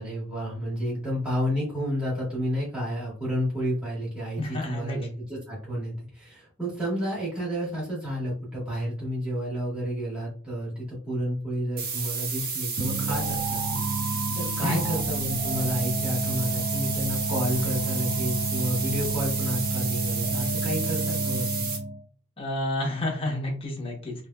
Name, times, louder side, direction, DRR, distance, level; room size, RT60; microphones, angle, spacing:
voice 1, 0.0-21.7, equal, 5° right, -8 dB, 1.5 m, -31 dB
voice 2, 4.4-5.0 14.6-14.9 22.4-24.1, left 1 dB, 25° left, 0 dB, 0.9 m, -30 dB
sound 1, 11.8-21.8, right 5 dB, 45° right, 0.9 m, -31 dB
sound 2, 12.8-22.0, right 2 dB, 65° right, 0.5 m, -30 dB
3.4 x 2.7 x 2.3 m, 0.42 s
head